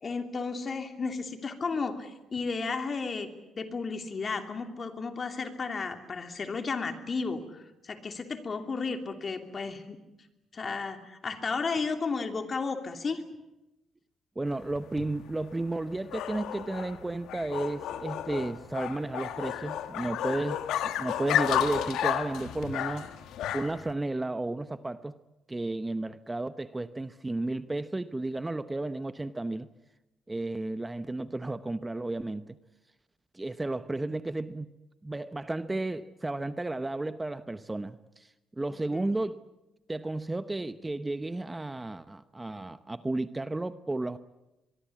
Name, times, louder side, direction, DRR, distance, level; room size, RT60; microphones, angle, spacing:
voice 1, 0.0-10.0 10.5-13.2 38.9-39.1, left 4 dB, 40° left, 3.1 m, -33 dB
voice 2, 14.4-20.6 20.8-23.1 23.5-25.1 25.5-29.7 30.3-32.6 33.3-34.7 35.0-39.4 39.9-44.2, right 2 dB, 15° right, 0.9 m, -33 dB
sound 1, 14.5-23.9, left 10 dB, 85° left, 1.7 m, -32 dB
24.0 x 23.0 x 8.6 m
cardioid pair, 90°, 0 cm